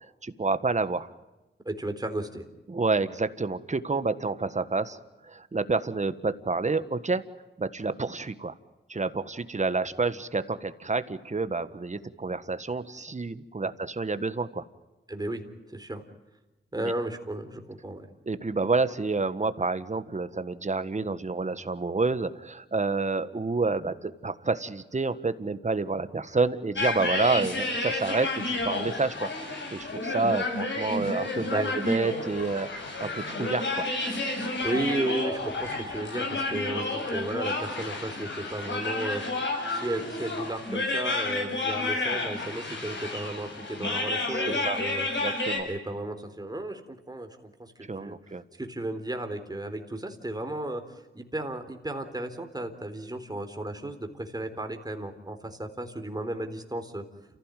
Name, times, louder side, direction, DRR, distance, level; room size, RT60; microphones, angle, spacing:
voice 1, 0.2-1.1 2.7-5.0 5.3-7.2 7.6-8.5 8.9-14.6 16.7-16.8 18.2-29.3 29.7-33.9 44.3-44.8 45.2-45.7 47.9-48.4, right 3 dB, 35° right, 12 dB, 1.6 m, -29 dB
voice 2, 1.6-2.5 15.1-15.4 15.7-16.0 16.7-18.1 31.5-31.8 34.6-39.2 39.7-45.1 45.6-48.2 48.6-50.8 51.1-57.0, right 1 dB, 20° right, 5 dB, 3.9 m, -34 dB
sound 1, 26.8-45.6, left 2 dB, 70° left, 7.7 m, -31 dB
29.5 x 15.5 x 9.2 m, 1.1 s
cardioid pair, 65°, 20 cm